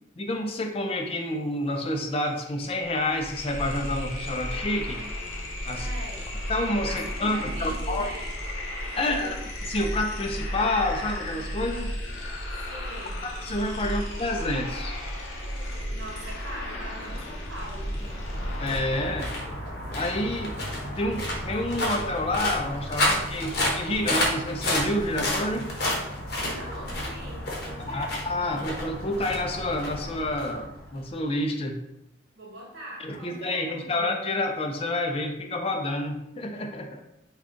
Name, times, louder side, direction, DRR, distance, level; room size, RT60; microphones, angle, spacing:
voice 1, 0.2-5.0 5.7-5.9 6.5-8.1 9.0-9.3 9.7-11.9 13.4-14.9 18.6-19.3 19.9-20.6 21.0-25.7 27.9-31.8 33.0-37.0, left 1 dB, 30° left, 3 dB, 0.4 m, -29 dB
sound 1, 1.8-1.9 2.1-18.8, equal, 85° left, 0.8 m, -34 dB
voice 2, 5.7-6.3 6.9-8.4 8.9-9.5 12.7-13.3 13.8-14.1 15.9-18.3 26.3-28.2 32.3-34.0, right 1 dB, 85° right, -3 dB, 0.8 m, -42 dB
sound 2, 17.7-31.1, left 1 dB, 55° left, 0.8 m, -31 dB
3.7 x 2.3 x 3.7 m, 0.84 s
head